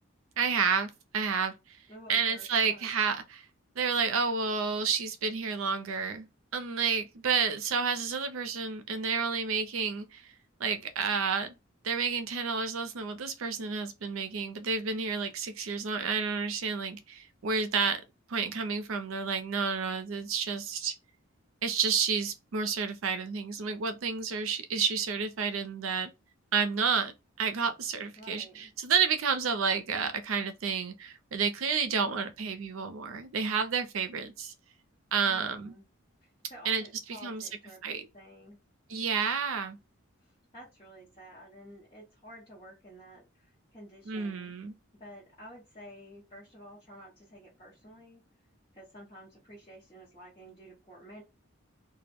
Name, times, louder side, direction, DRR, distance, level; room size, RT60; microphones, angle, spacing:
voice 1, 0.4-1.5 2.1-3.5 3.8-6.3 6.5-10.3 10.6-11.6 11.8-18.0 18.3-20.9 21.6-26.1 26.5-34.5 35.1-35.7 36.6-36.8 37.2-37.5 37.8-38.1 38.9-39.8 44.1-44.7, right 5 dB, 80° right, 0.5 m, -30 dB
voice 2, 1.9-2.9 28.2-28.7 35.3-35.9 36.2-38.6 40.2-44.5 45.0-48.2 48.7-51.2, equal, 30° left, 0.9 m, -51 dB
2.2 x 2.0 x 3.4 m
head